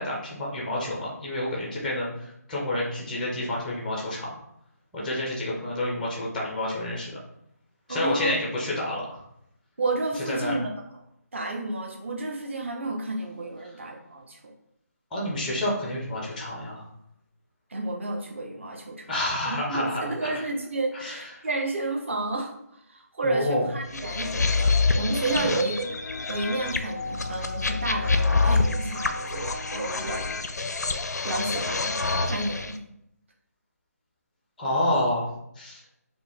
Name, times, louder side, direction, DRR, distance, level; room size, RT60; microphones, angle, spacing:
voice 1, 0.0-4.4 4.9-7.2 7.9-9.2 10.3-10.6 15.1-16.8 19.1-20.3 20.9-21.5 23.2-23.7 25.3-25.5 34.6-35.8, left 1 dB, ahead, -4 dB, 0.4 m, -29 dB
voice 2, 7.9-8.4 9.8-10.7 11.3-14.5 17.7-19.1 19.7-25.9 26.3-30.3 31.2-32.0 32.2-32.8, right 2 dB, 45° right, 1 dB, 0.9 m, -31 dB
sound 1, 23.9-32.7, left 3 dB, 80° left, 0.5 m, -26 dB
4.9 x 2.1 x 3.5 m, 0.76 s
figure-of-eight pair, 170°, 9 cm